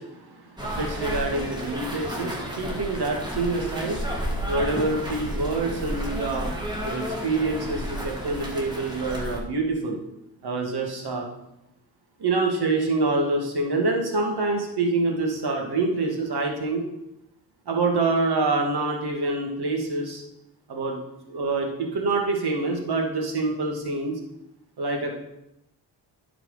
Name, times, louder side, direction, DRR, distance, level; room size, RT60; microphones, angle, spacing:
voice 1, 0.0-4.2 4.5-6.5 6.8-10.0 10.4-11.3 12.2-16.8 17.7-20.2 20.7-21.0 21.3-24.2 24.8-25.1, right 3 dB, 60° right, 1 dB, 2.2 m, -26 dB
sound 1, 0.6-9.4, equal, 10° right, 2.6 m, -32 dB
10.0 x 5.0 x 5.0 m, 0.87 s
supercardioid pair, 55°, 44 cm